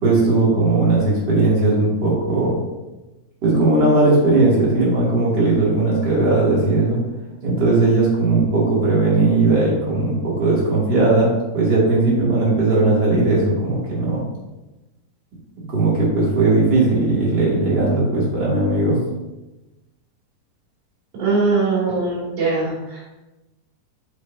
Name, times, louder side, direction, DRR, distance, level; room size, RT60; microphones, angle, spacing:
voice 1, 0.0-2.6 3.4-7.0 7.4-14.2 15.7-19.0, right 2 dB, 30° right, -6 dB, 2.8 m, -18 dB
voice 2, 21.2-23.0, right 3 dB, 50° right, -7 dB, 4.0 m, -21 dB
8.2 x 7.9 x 2.8 m, 1.0 s
omnidirectional pair, 4.2 m